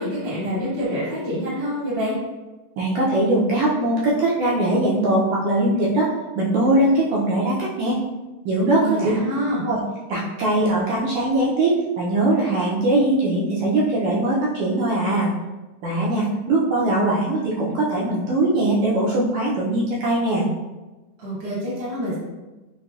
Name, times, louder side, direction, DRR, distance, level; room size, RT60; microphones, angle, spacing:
voice 1, 0.0-2.1 8.8-9.6 21.2-22.1, equal, 35° right, -8 dB, 0.9 m, -26 dB
voice 2, 2.8-8.0 8.4-9.0 9.6-9.8 10.1-15.3 15.8-20.4, right 1 dB, 80° right, -5 dB, 1.7 m, -21 dB
5.4 x 2.2 x 2.3 m, 1.1 s
omnidirectional pair, 3.5 m